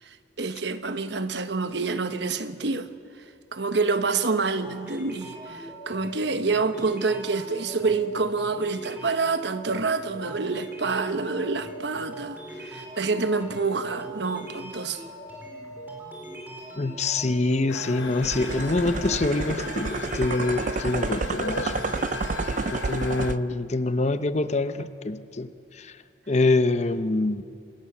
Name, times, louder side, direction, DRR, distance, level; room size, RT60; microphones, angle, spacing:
voice 1, 0.0-2.9 3.5-15.0, right 4 dB, 65° right, 1.2 m, -27 dB
sound 1, 4.6-22.8, right 1 dB, 10° right, 4.6 m, -41 dB
voice 2, 16.8-21.9 22.7-25.5 25.8-25.9 26.3-27.4, left 2 dB, 35° left, 0.8 m, -25 dB
sound 2, 17.7-23.3, left 5 dB, 85° left, 1.0 m, -36 dB
sound 3, 18.2-23.4, right 4 dB, 40° right, 0.5 m, -30 dB
26.0 x 21.0 x 7.3 m
head